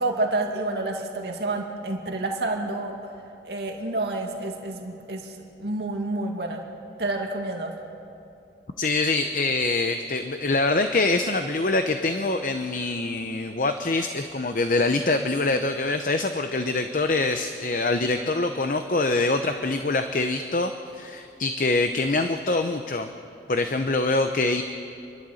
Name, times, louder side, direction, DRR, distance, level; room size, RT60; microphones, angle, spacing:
voice 1, 0.0-2.9 3.4-5.3 5.6-6.6 7.0-7.7, right 2 dB, 65° right, 1 dB, 2.2 m, -29 dB
voice 2, 8.8-23.1 23.5-24.6, left 2 dB, 45° left, 7 dB, 0.7 m, -24 dB
28.5 x 11.5 x 7.8 m, 2.6 s
head